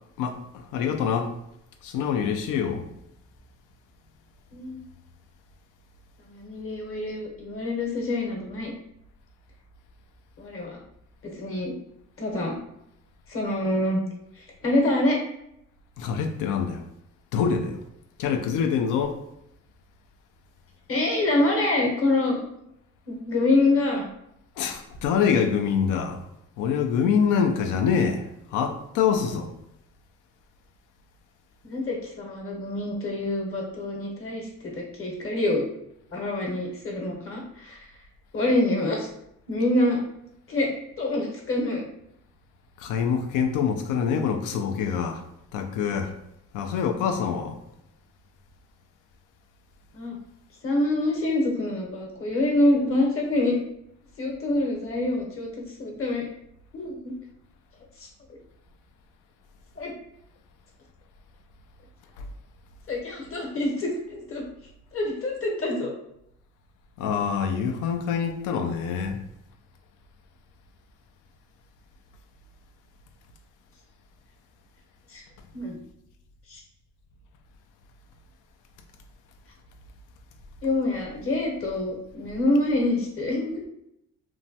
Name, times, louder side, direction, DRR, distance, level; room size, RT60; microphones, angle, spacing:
voice 1, 0.2-1.3 1.8-2.9 16.0-16.8 17.3-17.8 18.2-19.2 24.6-26.3 26.6-29.5 42.8-45.2 45.5-46.1 46.5-47.6 62.2-62.3 67.0-69.2, left 7 dB, 90° left, 0.5 m, -25 dB
voice 2, 4.5-4.9 6.3-8.7 10.4-10.8 11.4-11.7 12.2-12.5 13.3-14.0 14.6-15.2 20.9-22.4 23.1-24.1 31.6-34.5 34.7-35.6 36.1-37.9 38.3-39.1 39.5-40.0 40.5-41.8 49.9-50.2 50.6-53.6 54.2-55.5 55.8-56.3 56.7-57.1 58.0-58.1 59.8-59.9 62.9-64.4 64.9-65.9 75.1-75.2 75.5-75.8 76.5-76.6 80.6-83.6, left 2 dB, 45° left, 0.9 m, -26 dB
3.0 x 2.2 x 2.7 m
cardioid pair, 90°, 30 cm